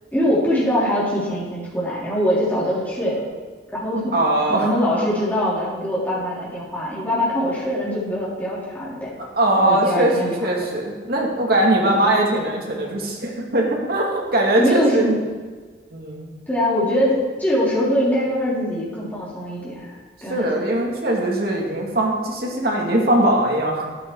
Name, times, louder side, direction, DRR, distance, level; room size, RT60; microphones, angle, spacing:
voice 1, 0.1-3.2 3.7-4.1 4.5-9.1 9.6-10.3 11.8-12.0 14.6-15.2 16.5-20.5, equal, 10° left, -8 dB, 3.7 m, -22 dB
voice 2, 4.1-5.1 9.4-15.0 15.9-16.3 20.3-23.8, right 1 dB, 60° right, -1 dB, 2.4 m, -21 dB
13.0 x 8.7 x 4.8 m, 1.4 s
head